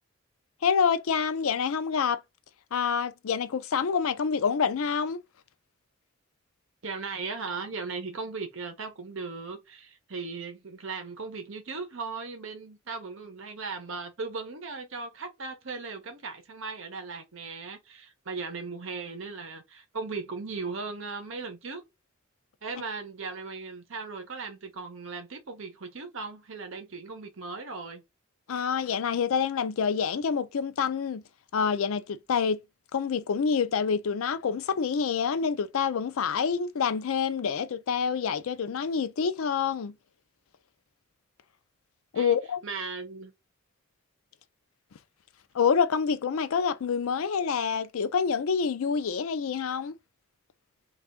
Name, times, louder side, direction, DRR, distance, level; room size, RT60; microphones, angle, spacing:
voice 1, 0.6-2.2 2.7-5.2 28.5-31.2 31.5-32.6 32.9-39.9 42.1-42.6 45.5-49.9, left 6 dB, 80° left, 0.4 m, -27 dB
voice 2, 6.8-21.8 22.6-28.0 42.1-42.4 42.6-43.3, right 4 dB, 65° right, 0.8 m, -37 dB
3.3 x 2.4 x 3.7 m
head